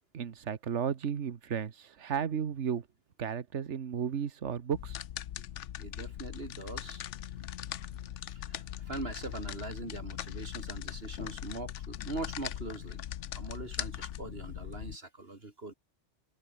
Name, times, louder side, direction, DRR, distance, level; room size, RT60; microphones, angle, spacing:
voice 1, 0.1-2.8 3.2-5.0, right 7 dB, 70° right, 1.5 m, -34 dB
sound 1, 4.7-15.0, left 11 dB, 75° left, 1.0 m, -40 dB
voice 2, 5.8-7.0 8.3-13.0 13.3-15.7, right 2 dB, 55° right, 3.2 m, -42 dB
omnidirectional pair, 1.2 m